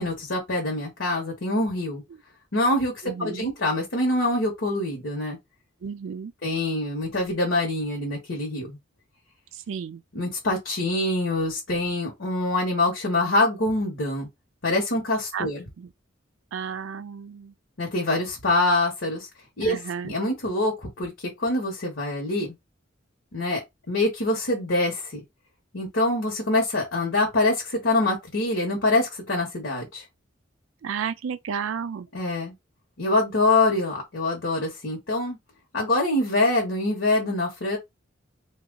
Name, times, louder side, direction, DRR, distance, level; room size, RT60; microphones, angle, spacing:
voice 1, 0.0-2.0 2.5-5.4 6.4-8.8 10.1-14.3 14.6-15.6 17.8-19.3 19.6-21.1 21.4-22.5 23.3-25.2 25.7-30.0 32.1-32.5 33.0-35.4 35.7-37.8, left 2 dB, 70° left, 1.1 m, -25 dB
voice 2, 3.0-3.5 5.8-6.3 9.7-10.0 15.3-15.5 15.8-15.9 16.5-17.5 19.6-20.1 30.8-32.1, right 7 dB, 80° right, 0.4 m, -32 dB
2.9 x 2.3 x 3.7 m
head